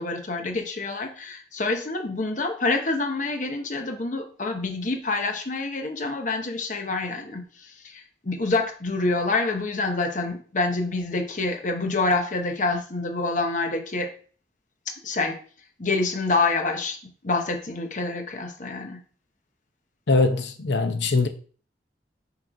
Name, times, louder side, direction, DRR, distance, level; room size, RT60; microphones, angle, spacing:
voice 1, 0.0-14.1 15.0-15.4 15.8-17.0 17.2-19.0, left 3 dB, 45° left, 0.9 m, -27 dB
voice 2, 20.1-21.3, left 3 dB, 90° left, 0.8 m, -22 dB
6.2 x 3.1 x 5.0 m
head